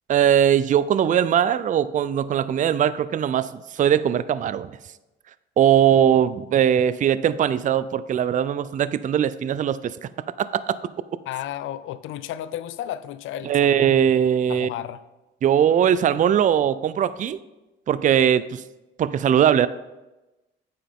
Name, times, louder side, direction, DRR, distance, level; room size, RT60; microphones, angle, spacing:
voice 1, 0.1-4.7 5.6-10.1 10.4-10.8 13.4-14.7 15.4-17.4 17.9-18.6 19.0-19.7, right 9 dB, 40° right, 16 dB, 0.4 m, -20 dB
voice 2, 11.3-14.0 14.5-15.0, left 12 dB, 80° left, 15 dB, 0.5 m, -33 dB
8.9 x 6.9 x 3.6 m, 1.0 s
cardioid pair, 90°, 20 cm